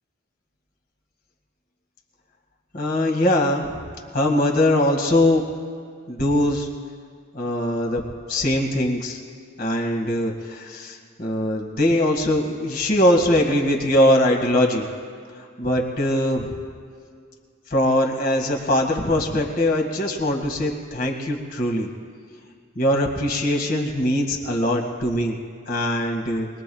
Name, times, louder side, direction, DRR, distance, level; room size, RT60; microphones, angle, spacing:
voice 1, 2.7-3.8 4.1-5.4 6.1-6.7 7.3-8.0 8.3-9.2 9.6-14.9 15.4-16.6 17.7-21.9 22.8-25.4 25.7-26.5, left 1 dB, 45° left, 1 dB, 2.0 m, -21 dB
25.0 x 21.0 x 2.4 m, 2.1 s
head